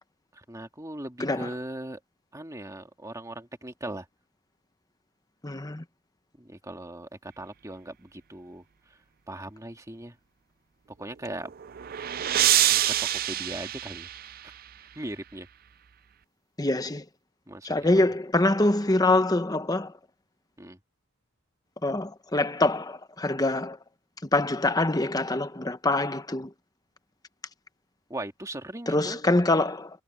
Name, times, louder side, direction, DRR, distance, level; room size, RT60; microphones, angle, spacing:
voice 1, 0.3-2.0 2.3-4.1 6.4-8.6 9.3-10.2 11.0-11.5 12.7-12.9 13.3-14.3 15.0-15.5 17.5-18.0 20.6-20.8 28.1-29.2, right 1 dB, 15° right, 2.0 m, -39 dB
voice 2, 5.4-5.8 16.6-17.0 17.6-19.9 21.8-23.8 24.3-26.5 28.9-29.9, left 2 dB, 20° left, 0.9 m, -24 dB
sound 1, 11.3-14.7, right 13 dB, 45° right, 0.4 m, -26 dB
head